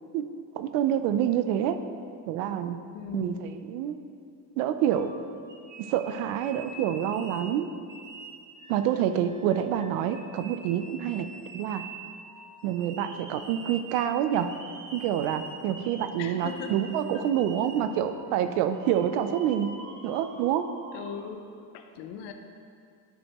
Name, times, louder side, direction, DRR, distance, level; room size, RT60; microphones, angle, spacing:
voice 1, 0.5-1.8 2.3-2.8 3.1-4.0 4.6-5.1 5.8-7.7 8.7-11.3 11.5-11.8 12.6-14.5 14.9-19.7 20.0-20.7, right 10 dB, 90° right, 10 dB, 0.6 m, -27 dB
voice 2, 2.9-3.6 16.2-16.7 17.1-17.2 20.9-21.4 21.7-22.3, left 7 dB, 80° left, 6 dB, 0.8 m, -39 dB
sound 1, 4.9-7.5 7.9-21.3, right 3 dB, 50° right, 1.3 m, -46 dB
10.0 x 6.4 x 3.0 m, 2.4 s
cardioid pair, 120°, 41 cm